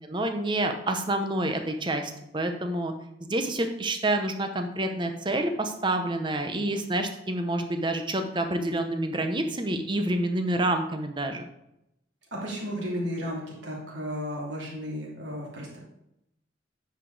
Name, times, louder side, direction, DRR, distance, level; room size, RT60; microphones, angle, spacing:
voice 1, 0.0-2.9 3.2-11.5, right 1 dB, 25° right, 6 dB, 0.7 m, -28 dB
voice 2, 12.3-15.8, equal, 65° right, -4 dB, 2.8 m, -34 dB
9.4 x 4.9 x 4.0 m, 0.84 s
head